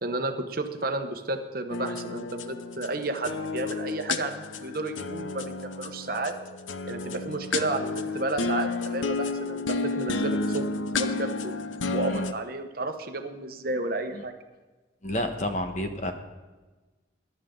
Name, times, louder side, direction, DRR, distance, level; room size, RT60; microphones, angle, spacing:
voice 1, 0.0-6.4 6.9-10.7 10.9-11.5 11.9-14.3, right 2 dB, 50° right, 6 dB, 1.2 m, -32 dB
sound 1, 1.7-12.3, left 3 dB, 85° left, 0.8 m, -31 dB
voice 2, 15.0-16.1, left 1 dB, 40° left, 6 dB, 1.4 m, -30 dB
21.5 x 11.5 x 3.9 m, 1.2 s
head